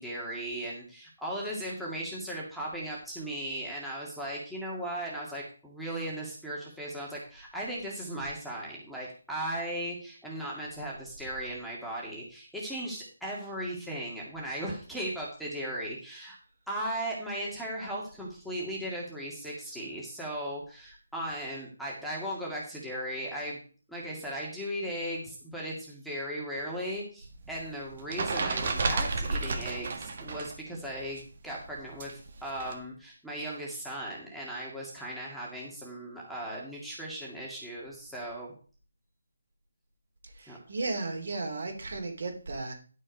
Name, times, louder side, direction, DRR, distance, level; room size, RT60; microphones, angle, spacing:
voice 1, 0.0-16.4 16.7-23.6 23.9-32.1 32.4-38.5 40.5-40.6, right 1 dB, ahead, -6 dB, 1.9 m, -37 dB
sound 1, 27.2-30.6 30.8-32.7, right 3 dB, 40° right, 1.8 m, -32 dB
voice 2, 40.4-42.7, right 3 dB, 60° right, 4 dB, 3.1 m, -35 dB
11.0 x 6.3 x 5.2 m, 0.40 s
hypercardioid pair, 170°, 0 cm